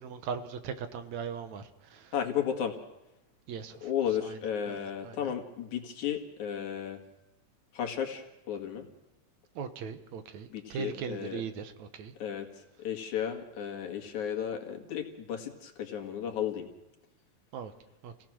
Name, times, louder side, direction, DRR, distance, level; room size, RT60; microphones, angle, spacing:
voice 1, 0.0-1.6 1.9-2.1 3.5-3.7 4.2-4.4 4.7-4.8 5.0-5.3 9.6-12.1 17.5-17.7 18.0-18.1, right 7 dB, 70° right, 10 dB, 2.4 m, -39 dB
voice 2, 2.1-2.7 3.8-7.0 7.7-8.8 10.5-11.4 12.2-12.5 12.8-16.7, left 9 dB, 75° left, 3 dB, 3.3 m, -34 dB
28.0 x 17.0 x 6.2 m, 0.97 s
omnidirectional pair, 3.5 m